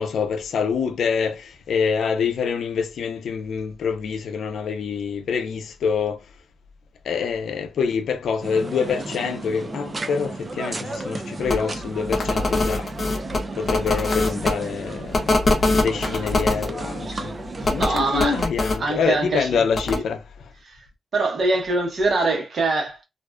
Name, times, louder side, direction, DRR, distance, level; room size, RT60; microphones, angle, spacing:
voice 1, 0.0-6.2 7.0-12.9 13.6-15.4 15.8-17.3 17.7-20.5, left 6 dB, 85° left, 0.4 m, -26 dB
sound 1, 8.4-18.5, right 2 dB, 35° right, 0.4 m, -33 dB
sound 2, 11.5-11.6 12.1-14.5 15.1-16.7 17.6-18.8 19.7-20.0, left 2 dB, 45° left, 0.7 m, -22 dB
voice 2, 17.8-18.4 18.8-19.5 20.7-20.8 21.1-23.1, right 2 dB, 60° right, 1.0 m, -23 dB
2.5 x 2.2 x 2.3 m
cardioid pair, 90°, 0 cm